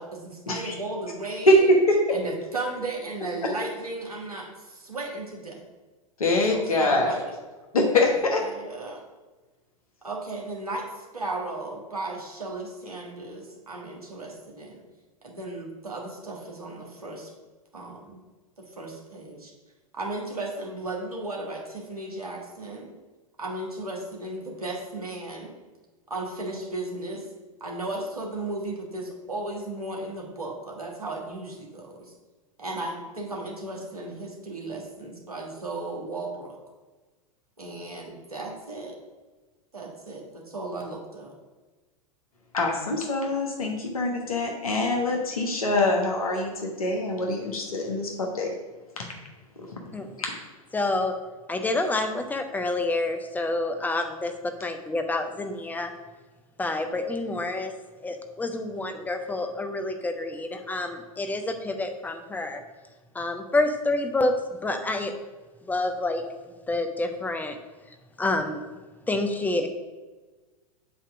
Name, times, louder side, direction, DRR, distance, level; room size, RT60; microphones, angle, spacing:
voice 1, 0.0-1.7 2.1-5.6 6.5-7.3 8.4-9.0 10.0-14.8 15.2-17.3 17.7-18.2 18.8-19.5 19.9-22.9 23.4-25.5 26.1-27.3 27.6-32.1 32.6-36.6 37.6-39.0 39.7-41.3, right 2 dB, 85° right, -1 dB, 1.5 m, -35 dB
voice 2, 6.2-7.2 7.7-8.4 42.5-48.5 49.0-49.1 50.2-50.3, left 2 dB, 75° left, 1 dB, 1.1 m, -24 dB
voice 3, 50.7-51.1 51.5-54.3 54.6-55.9 56.6-57.7 58.0-62.6 63.1-64.3 64.6-65.1 65.7-66.2 66.7-67.6 68.2-68.6 69.1-69.7, left 2 dB, 10° left, 6 dB, 0.6 m, -28 dB
8.2 x 2.9 x 6.0 m, 1.3 s
figure-of-eight pair, 95°, 19 cm